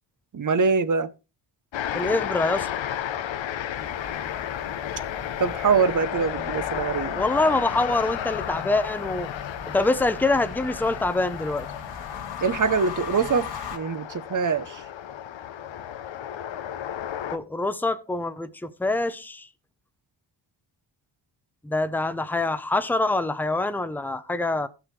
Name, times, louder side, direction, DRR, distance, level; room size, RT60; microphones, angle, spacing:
voice 1, 0.3-1.1 5.4-7.2 12.4-14.8, right 5 dB, 40° right, 0.8 m, -24 dB
sound 1, 1.7-17.4, left 10 dB, 80° left, 0.8 m, -33 dB
voice 2, 1.9-2.7 7.2-9.3 9.7-11.7 17.3-19.5 21.6-24.7, left 2 dB, 5° left, 0.6 m, -25 dB
sound 2, 3.7-13.8, left 6 dB, 65° left, 2.3 m, -40 dB
15.5 x 6.1 x 3.2 m
cardioid pair, 80°, 45 cm